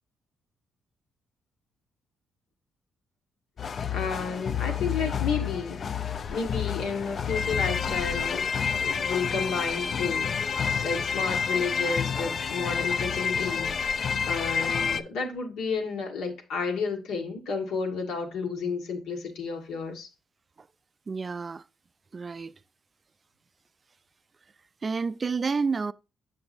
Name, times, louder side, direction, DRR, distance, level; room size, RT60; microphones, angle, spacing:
sound 1, 3.6-15.0, left 6 dB, 50° left, 0.5 m, -29 dB
voice 1, 3.9-5.8 6.3-8.4 8.8-10.3 10.8-14.0 14.2-20.1, left 5 dB, 85° left, 1.8 m, -31 dB
voice 2, 21.1-21.6 22.1-22.5 24.8-25.9, right 4 dB, 35° right, 0.3 m, -29 dB
7.8 x 6.0 x 2.5 m
cardioid pair, 90°, 0 cm